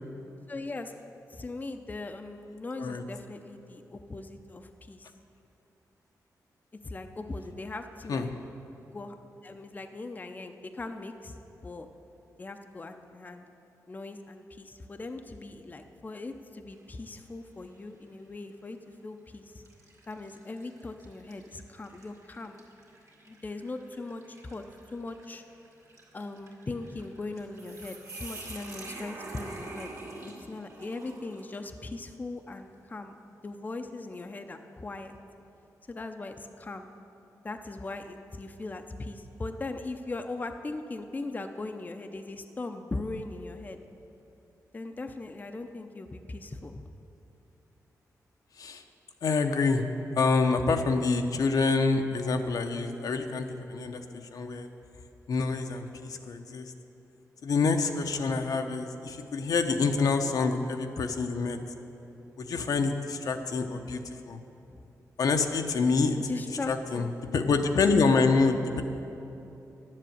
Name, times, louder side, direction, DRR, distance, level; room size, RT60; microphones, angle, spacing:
voice 1, 0.5-1.0 1.3-5.1 6.8-8.3 8.9-9.1 9.4-11.9 12.4-13.5 13.9-19.6 20.1-22.6 23.3-24.6 24.9-25.4 26.1-29.9 30.2-33.1 33.4-35.2 35.9-36.9 37.4-43.8 44.7-46.9 64.7-64.9 66.2-67.1, left 2 dB, 25° left, 6 dB, 0.6 m, -39 dB
sound 1, 16.7-17.2 17.7-17.8 18.8-19.0 19.6-31.7, right 2 dB, 55° right, 2.2 m, -47 dB
voice 2, 49.2-49.8 50.2-54.0 54.3-54.7 55.3-56.7 57.4-61.6 62.4-64.0 64.3-64.4 65.2-66.2 66.7-67.1 67.3-68.8, left 4 dB, 70° left, 5 dB, 0.8 m, -26 dB
10.5 x 7.6 x 7.9 m, 2.9 s
cardioid pair, 95°, 6 cm